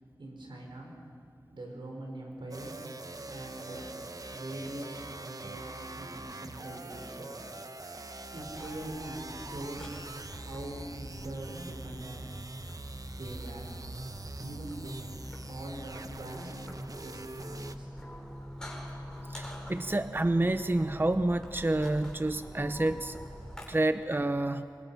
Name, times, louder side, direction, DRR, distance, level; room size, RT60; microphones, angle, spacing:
voice 1, 0.2-1.0 1.5-2.8 3.3-3.9 4.3-7.3 8.3-9.9 10.3-12.3 13.1-13.7 14.4-14.9 15.5-16.5 17.0-18.0, right 1 dB, 85° right, 0 dB, 5.1 m, -43 dB
sound 1, 2.5-17.8, right 2 dB, 50° right, 1.1 m, -43 dB
sound 2, 8.4-23.6, equal, 10° left, 6.2 m, -45 dB
voice 2, 19.3-23.1 23.7-24.6, right 2 dB, 25° right, 10 dB, 0.8 m, -28 dB
27.0 x 24.5 x 5.8 m, 2.3 s
cardioid pair, 45°, 8 cm